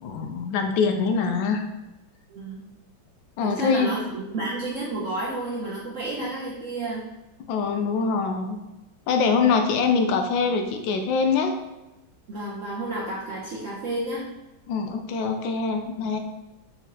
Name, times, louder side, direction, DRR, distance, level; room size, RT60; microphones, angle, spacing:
voice 1, 0.0-1.6 3.4-3.9 7.5-8.6 9.1-11.6 14.7-16.2, left 5 dB, 80° left, 5 dB, 1.3 m, -24 dB
voice 2, 2.3-2.6 3.4-7.0 12.3-14.3, right 2 dB, 65° right, -5 dB, 0.7 m, -31 dB
4.1 x 3.9 x 2.7 m, 1.0 s
omnidirectional pair, 2.1 m